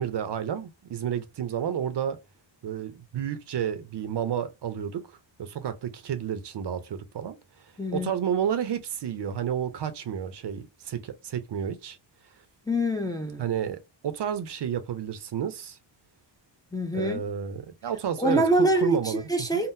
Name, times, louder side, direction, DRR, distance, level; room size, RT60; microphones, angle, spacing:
voice 1, 0.0-2.2 2.6-5.0 5.4-7.4 7.9-12.0 13.4-15.8 16.9-19.2 19.5-19.6, right 8 dB, 65° right, 0.6 m, -31 dB
voice 2, 7.8-8.1 12.7-13.4 16.7-17.2 18.2-19.7, right 1 dB, 10° left, 0.4 m, -25 dB
3.7 x 2.0 x 2.6 m
wide cardioid pair, 150°, 46 cm